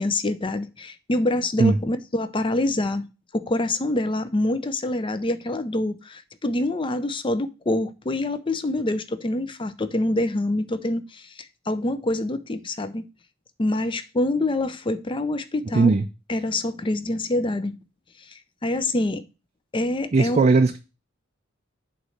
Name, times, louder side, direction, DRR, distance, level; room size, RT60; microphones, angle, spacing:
voice 1, 0.0-3.0 3.3-13.1 13.6-15.9 16.3-17.8 18.3-19.2 19.7-20.5, left 1 dB, 25° left, 0.6 m, -26 dB
voice 2, 15.7-16.0 20.1-20.8, right 3 dB, 35° right, 0.4 m, -18 dB
8.0 x 3.2 x 6.3 m
head